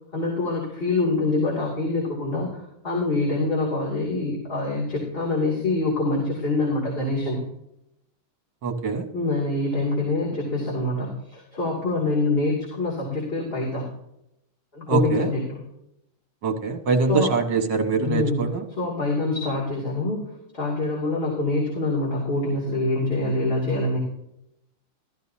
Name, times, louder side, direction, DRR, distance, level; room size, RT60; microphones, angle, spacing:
voice 1, 0.1-7.4 9.1-13.9 14.7-15.6 17.1-17.3 18.0-20.2 20.5-24.0, left 2 dB, 25° left, -5 dB, 2.8 m, -25 dB
voice 2, 8.6-9.1 14.9-15.3 16.4-18.6, right 4 dB, 60° right, 4 dB, 2.0 m, -23 dB
14.5 x 13.5 x 2.8 m, 0.83 s
omnidirectional pair, 2.3 m